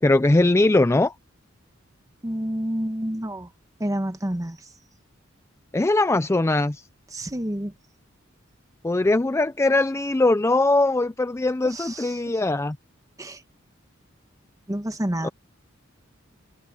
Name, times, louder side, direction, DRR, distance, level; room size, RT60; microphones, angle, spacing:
voice 1, 0.0-1.1 5.7-6.8 8.8-12.8 15.2-15.3, left 2 dB, 15° left, 0.4 m, -21 dB
voice 2, 2.2-3.5 3.8-4.7 7.1-7.7 11.6-12.4 13.2-13.4 14.7-15.3, right 1 dB, 15° right, 1.2 m, -29 dB
head